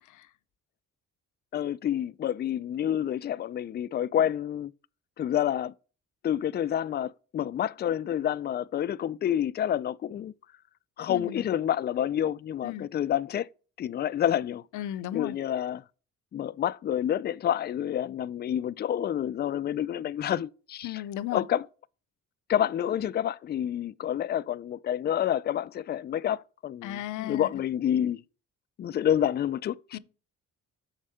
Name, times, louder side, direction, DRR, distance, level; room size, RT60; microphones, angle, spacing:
voice 1, 1.5-4.7 5.2-5.7 6.2-10.3 11.0-13.5 13.8-14.6 15.1-15.8 16.3-21.0 21.3-21.6 22.5-28.2 28.8-30.0, left 10 dB, 35° left, 0.4 m, -28 dB
voice 2, 11.1-11.5 12.6-12.9 14.7-15.4 20.8-21.5 26.8-27.5 29.9-30.0, left 13 dB, 80° left, 0.7 m, -35 dB
7.2 x 5.0 x 5.5 m
cardioid pair, 90°, 30 cm